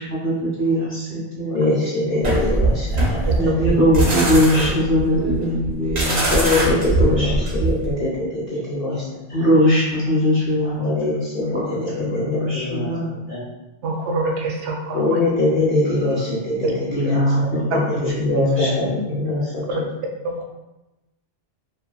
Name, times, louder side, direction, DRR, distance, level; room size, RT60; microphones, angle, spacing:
voice 1, 0.0-1.6 3.3-7.9 9.3-13.1 16.9-17.8 18.3-19.2, equal, 15° left, -7 dB, 0.7 m, -21 dB
voice 2, 1.5-3.5 6.3-7.4 7.7-9.0 10.8-12.9 13.3-13.4 14.9-16.7 17.0-17.2 18.0-19.8, left 2 dB, 60° left, -7 dB, 0.8 m, -23 dB
sound 1, 2.2-7.9, right 2 dB, 45° right, 0.7 m, -21 dB
voice 3, 13.8-15.2 16.6-16.7 19.7-19.8 20.2-20.4, right 3 dB, 80° right, 0 dB, 0.9 m, -25 dB
3.0 x 2.3 x 2.3 m, 0.99 s
omnidirectional pair, 1.2 m